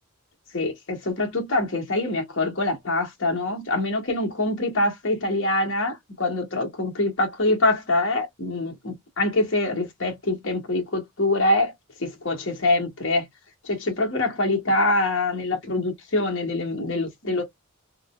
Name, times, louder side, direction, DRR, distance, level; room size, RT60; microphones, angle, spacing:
voice 1, 0.5-11.7 12.0-13.3 13.6-17.4, left 2 dB, 55° left, 1.2 m, -24 dB
3.7 x 2.0 x 2.3 m
head